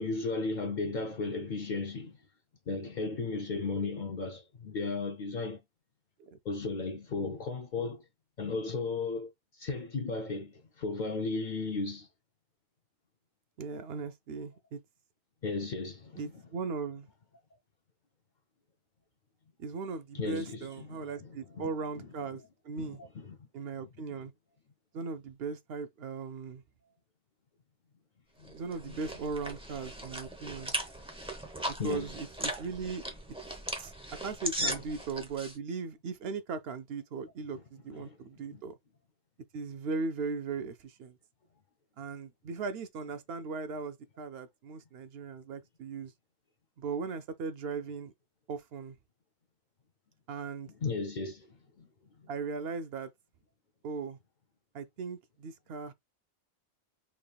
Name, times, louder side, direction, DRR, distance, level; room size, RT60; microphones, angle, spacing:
voice 1, 0.0-2.2 2.7-5.6 6.4-8.0 8.4-12.1 15.4-16.3 20.1-22.1 22.8-23.4 28.4-28.5 28.9-29.0 31.8-32.1 34.6-34.8 37.9-38.6 50.8-51.9, left 3 dB, 55° left, 0.5 m, -35 dB
voice 2, 13.6-14.8 16.2-17.1 19.6-23.0 23.5-24.3 24.9-26.6 28.5-30.7 31.6-33.0 33.8-33.9 34.2-38.8 39.5-41.2 42.0-46.1 46.8-48.1 48.5-49.0 50.3-50.7 52.3-53.1 53.8-54.2 54.7-55.9, right 4 dB, 65° right, 0.7 m, -38 dB
sound 1, 28.4-35.5, right 1 dB, 5° right, 0.7 m, -38 dB
4.0 x 3.4 x 2.3 m
omnidirectional pair, 1.2 m